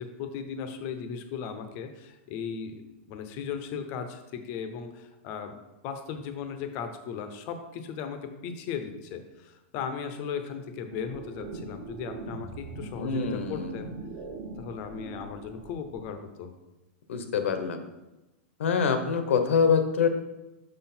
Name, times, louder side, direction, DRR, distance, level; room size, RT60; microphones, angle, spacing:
voice 1, 0.0-5.6 5.8-13.9 14.6-16.5, left 6 dB, 30° left, 7 dB, 0.6 m, -37 dB
sound 1, 10.9-16.0, right 3 dB, 40° right, 1.0 m, -41 dB
voice 2, 13.0-13.7 17.1-17.8 18.6-20.1, left 6 dB, 85° left, 8 dB, 1.0 m, -25 dB
6.3 x 5.7 x 4.3 m, 1.0 s
supercardioid pair, 170°, 7 cm